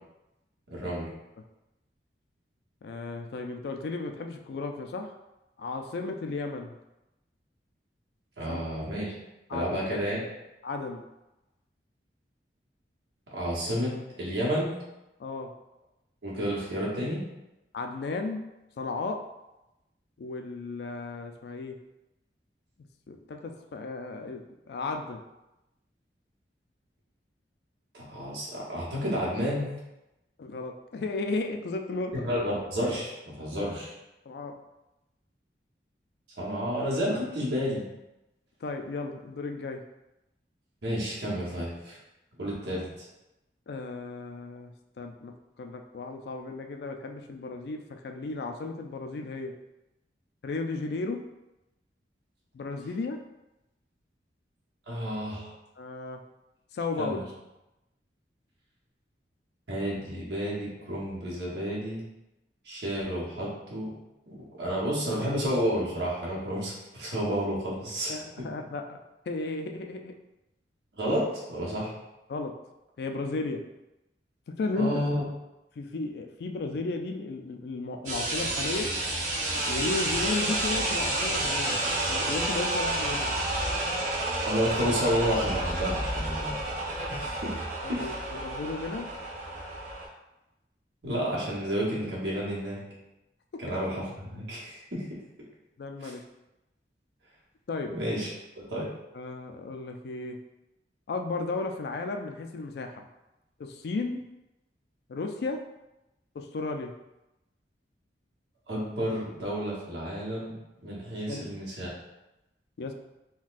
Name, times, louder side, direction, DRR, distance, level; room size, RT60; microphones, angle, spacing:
voice 1, 0.7-1.1 8.4-9.1 9.5-10.2 13.3-14.8 16.2-17.2 27.9-29.7 32.2-33.9 36.4-37.8 40.8-42.0 42.4-42.8 54.9-55.5 57.0-57.2 59.7-62.0 62.6-63.9 64.3-68.1 68.4-68.5 70.9-71.9 74.8-75.2 84.4-86.6 87.1-88.2 91.0-92.8 93.6-95.0 96.0-96.1 97.9-98.3 98.7-98.9 108.7-110.5 110.8-111.9, equal, 75° right, -6 dB, 1.0 m, -31 dB
voice 2, 2.8-5.1 5.6-6.7 8.5-8.6 9.5-10.0 10.6-11.0 15.2-15.5 17.7-18.4 18.8-19.2 20.2-21.7 23.1-25.2 30.4-32.2 33.6-33.7 34.3-34.5 38.6-39.8 43.7-44.7 45.0-45.3 45.6-49.5 50.4-51.2 52.5-53.2 55.8-56.2 56.7-57.2 68.1-69.0 69.3-70.1 72.3-72.5 73.0-73.6 74.5-74.9 75.8-78.9 79.7-83.3 87.8-89.1 93.7-93.8 95.8-96.2 97.7-97.9 99.1-100.4 101.1-103.0 103.6-104.2 105.1-105.6 106.4-106.9 111.3-111.4 112.8-112.9, left 3 dB, 65° left, 4 dB, 0.3 m, -34 dB
sound 1, 78.1-90.1, right 1 dB, 45° right, 0.7 m, -30 dB
4.0 x 2.2 x 2.5 m, 0.94 s
head